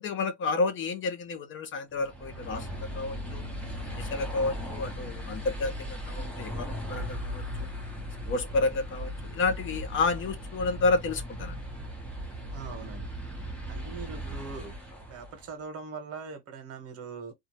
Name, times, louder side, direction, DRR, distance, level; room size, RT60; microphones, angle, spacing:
voice 1, 0.0-3.5 3.9-7.7 8.3-11.6, left 3 dB, 40° left, 0.6 m, -30 dB
sound 1, 2.0-15.5, equal, 5° left, 0.9 m, -38 dB
voice 2, 12.5-13.1 13.7-14.7 15.1-17.3, right 5 dB, 50° right, 1.1 m, -41 dB
2.6 x 2.3 x 3.0 m
cardioid pair, 145°, 30 cm